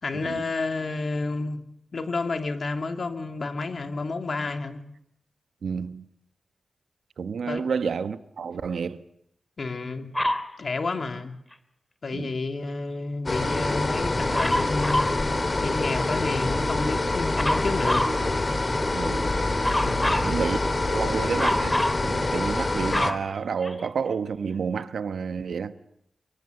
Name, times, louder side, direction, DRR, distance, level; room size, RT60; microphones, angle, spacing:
voice 1, 0.0-1.6 1.9-4.8 7.5-7.7 9.6-10.2 10.6-11.4 12.0-15.3 15.6-18.1 19.8-20.2, left 3 dB, 60° left, 2.6 m, -30 dB
voice 2, 5.6-6.0 7.2-9.0 12.1-12.3 18.9-19.3 19.8-20.6 20.8-25.7, right 6 dB, 80° right, 1.1 m, -30 dB
Dog, 10.2-10.5 14.3-15.2 17.4-18.2 19.6-20.3 21.4-22.0 22.6-24.1 24.8-24.9, left 1 dB, 15° left, 2.3 m, -26 dB
sound 1, 13.3-23.1, left 2 dB, 40° left, 2.2 m, -26 dB
Musical instrument, 13.4-21.9, right 3 dB, 35° right, 2.3 m, -38 dB
25.0 x 23.5 x 8.0 m
cardioid pair, 55°, 0 cm